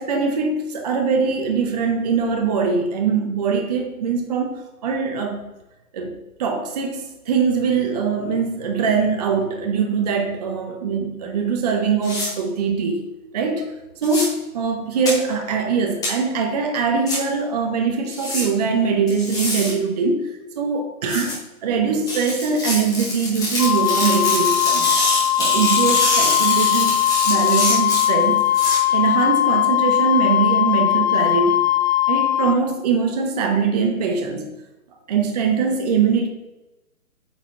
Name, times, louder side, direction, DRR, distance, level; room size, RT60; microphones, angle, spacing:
voice 1, 0.0-5.4 5.9-13.0 13.3-24.8 25.4-28.5 28.9-31.6 32.1-34.6 35.1-36.3, right 5 dB, 30° right, 4 dB, 0.7 m, -22 dB
sound 1, 12.0-12.3 14.0-14.2 15.1-15.2 16.0-16.1 17.1-17.2 18.1-18.4 19.1-19.7 21.1-21.3 22.1-28.8, left 1 dB, 10° left, 1.4 m, -25 dB
Wind instrument woodwind instrument, 23.6-32.6, left 13 dB, 80° left, 0.7 m, -19 dB
8.7 x 4.4 x 3.0 m, 1.0 s
hypercardioid pair, 145°, 43 cm